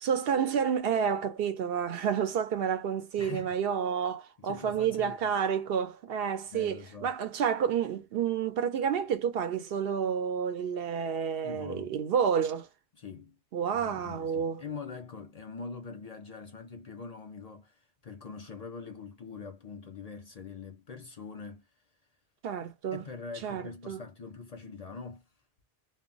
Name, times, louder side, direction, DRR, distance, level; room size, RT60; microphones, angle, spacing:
voice 1, 0.0-12.7 13.5-14.6 22.4-23.0 23.4-24.0, right 7 dB, 70° right, 0.8 m, -30 dB
voice 2, 3.2-3.5 4.4-5.3 6.5-7.2 11.4-11.9 13.0-13.4 13.7-21.7 22.9-25.2, left 5 dB, 45° left, 0.6 m, -43 dB
2.1 x 2.0 x 3.7 m
omnidirectional pair, 1.0 m